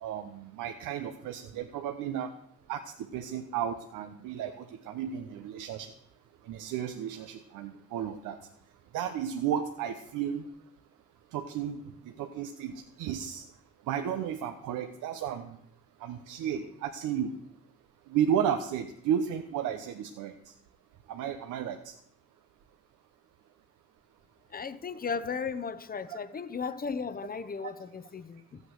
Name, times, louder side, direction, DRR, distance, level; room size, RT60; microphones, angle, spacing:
voice 1, 0.0-2.3 2.7-5.9 6.5-8.4 8.9-10.5 11.3-13.4 13.9-15.6 16.0-17.3 18.1-20.3 21.1-21.9 26.1-26.2, right 9 dB, 90° right, 0.9 m, -33 dB
voice 2, 24.5-28.6, left 5 dB, 30° left, 0.8 m, -36 dB
14.0 x 8.6 x 6.5 m
cardioid pair, 90°, 30 cm